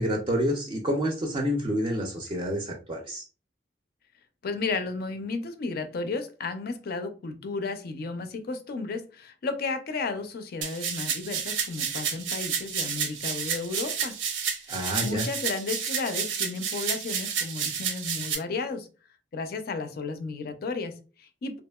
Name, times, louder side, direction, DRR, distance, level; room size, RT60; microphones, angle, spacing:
voice 1, 0.0-3.2 14.7-15.3, equal, 30° right, 0.4 m, -28 dB
voice 2, 4.4-14.2 14.6-18.9 19.3-21.6, left 4 dB, 55° left, 0.4 m, -33 dB
sound 1, 10.6-18.3, right 7 dB, 90° right, 0.5 m, -30 dB
2.8 x 2.4 x 2.2 m
head